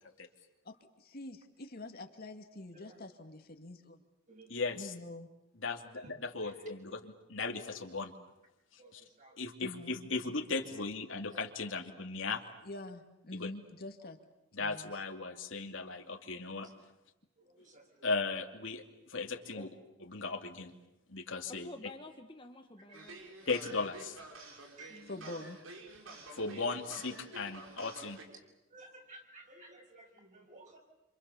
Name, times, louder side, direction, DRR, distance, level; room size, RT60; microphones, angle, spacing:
voice 1, 0.7-4.0 4.7-5.3 9.6-9.9 12.6-14.2 14.6-14.9 25.1-25.6, left 2 dB, 50° left, 5 dB, 2.2 m, -46 dB
voice 2, 4.5-4.9 5.6-8.1 8.9-9.0 9.4-12.4 13.4-13.5 14.5-16.7 18.0-18.8 19.1-19.7 20.0-20.7 21.1-21.7 23.5-24.2 26.4-28.2, left 4 dB, 70° left, 4 dB, 2.7 m, -37 dB
voice 3, 21.5-23.2 24.9-25.3, left 1 dB, 25° left, 3 dB, 1.5 m, -50 dB
sound 1, 22.9-28.2, right 2 dB, 90° right, 5.2 m, -50 dB
voice 4, 26.3-26.6 27.1-27.2 28.3-28.4 28.7-30.8, right 2 dB, 40° right, 1 dB, 7.1 m, -54 dB
29.0 x 27.0 x 7.1 m, 0.93 s
head